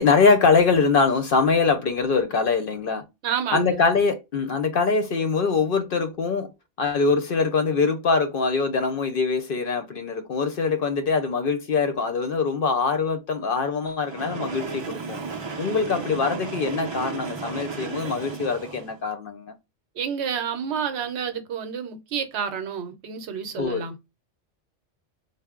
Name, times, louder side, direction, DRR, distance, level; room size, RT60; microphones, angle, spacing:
voice 1, 0.0-3.0 3.5-6.5 6.8-15.2 15.6-19.5 23.6-23.9, left 4 dB, 60° left, 0.7 m, -23 dB
voice 2, 3.2-3.8 20.0-23.9, right 7 dB, 70° right, 0.9 m, -29 dB
Train, 14.0-19.0, right 5 dB, 40° right, 0.4 m, -34 dB
4.1 x 2.0 x 3.5 m
omnidirectional pair, 1.2 m